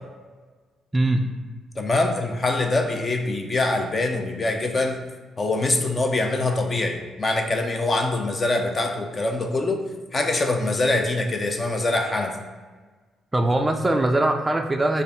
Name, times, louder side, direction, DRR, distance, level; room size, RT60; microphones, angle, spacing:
voice 1, 0.9-1.2 13.3-15.0, right 1 dB, 20° right, 4 dB, 0.3 m, -21 dB
voice 2, 1.8-5.0 5.4-9.8 10.1-12.3, left 2 dB, 30° left, 4 dB, 0.6 m, -24 dB
5.2 x 2.5 x 4.1 m, 1.4 s
cardioid pair, 90°, 0 cm